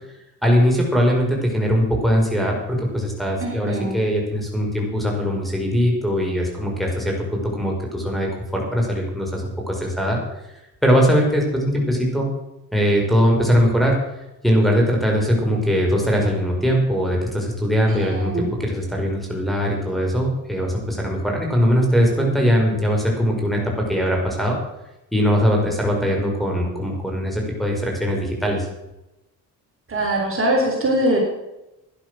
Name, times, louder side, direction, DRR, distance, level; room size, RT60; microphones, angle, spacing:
voice 1, 0.4-10.2 10.5-12.3 12.7-14.0 14.4-24.6 25.1-28.7, equal, ahead, -1 dB, 5.5 m, -21 dB
voice 2, 3.4-4.0 17.9-18.5 29.9-31.2, right 1 dB, 35° right, 0 dB, 3.8 m, -22 dB
12.0 x 11.0 x 6.3 m, 0.93 s
supercardioid pair, 75°, 38 cm